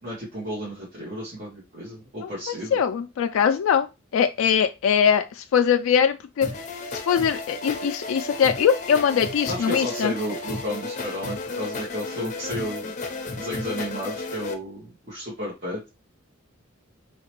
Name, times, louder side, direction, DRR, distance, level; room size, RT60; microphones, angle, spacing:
voice 1, 0.0-2.8 9.5-12.9 13.3-15.9, equal, 40° right, 1.3 m, -32 dB
voice 2, 2.2-3.9 4.1-6.5 6.9-10.1, left 7 dB, 85° left, 0.3 m, -22 dB
sound 1, 6.4-14.5, left 3 dB, 35° left, 0.6 m, -33 dB
3.2 x 2.9 x 3.0 m
head